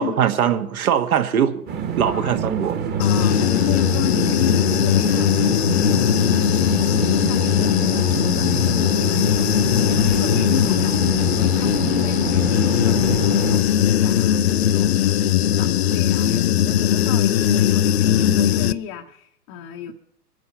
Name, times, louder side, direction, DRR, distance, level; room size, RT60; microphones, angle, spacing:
voice 1, 0.0-1.6 2.0-2.8, right 9 dB, 60° right, 1.4 m, -21 dB
sound 1, 1.7-13.6, right 7 dB, 20° right, 1.3 m, -27 dB
voice 2, 2.1-2.4 3.0-15.2 15.6-19.9, left 9 dB, 30° left, 0.8 m, -33 dB
Human voice / Buzz, 3.0-18.7, left 11 dB, 45° left, 0.4 m, -19 dB
sound 2, 9.0-15.1, left 2 dB, ahead, 1.0 m, -40 dB
23.5 x 8.3 x 5.3 m
figure-of-eight pair, 115°, 49 cm